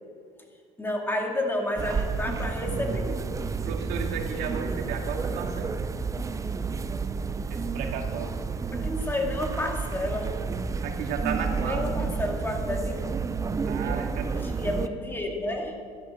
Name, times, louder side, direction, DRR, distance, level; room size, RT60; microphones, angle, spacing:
voice 1, 0.8-3.2 8.7-10.4 11.6-13.1 14.3-15.8, left 1 dB, 15° left, 1 dB, 2.5 m, -30 dB
sound 1, 1.8-14.9, right 5 dB, 20° right, 0.6 m, -30 dB
voice 2, 3.7-5.8 7.5-8.4 10.8-11.8 13.6-14.4, right 6 dB, 80° right, 3 dB, 2.0 m, -34 dB
12.5 x 12.0 x 7.1 m, 2.2 s
cardioid pair, 120°, 16 cm